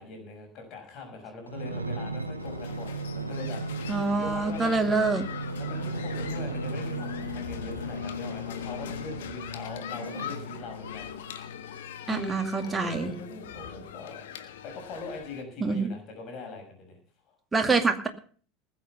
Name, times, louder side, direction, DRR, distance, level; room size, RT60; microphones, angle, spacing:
voice 1, 0.0-5.0 5.6-11.1 12.1-14.3 14.6-17.0 17.3-17.4, left 3 dB, 45° left, 3 dB, 6.1 m, -41 dB
sound 1, 1.5-9.4 10.0-11.3 11.9-12.0, right 3 dB, 85° right, 0.9 m, -36 dB
sound 2, 2.4-15.4, left 8 dB, 65° left, 1.4 m, -40 dB
voice 2, 3.9-5.2 12.1-13.1 15.6-15.9 17.5-18.1, right 4 dB, 15° right, 5 dB, 2.3 m, -26 dB
19.5 x 8.0 x 5.9 m, 0.42 s
figure-of-eight pair, 75°, 0 cm